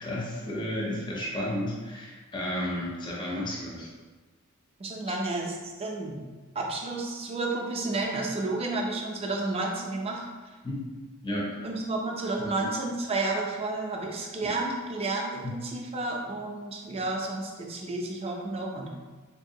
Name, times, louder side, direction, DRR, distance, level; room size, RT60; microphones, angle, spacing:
voice 1, 0.0-3.9 10.6-10.9 11.2-11.6 12.5-12.7 14.4-14.5, left 1 dB, 20° left, -4 dB, 0.5 m, -32 dB
voice 2, 4.8-6.2 6.5-10.2 11.6-19.0, right 2 dB, 30° right, 0 dB, 0.4 m, -31 dB
3.6 x 2.7 x 2.7 m, 1.3 s
head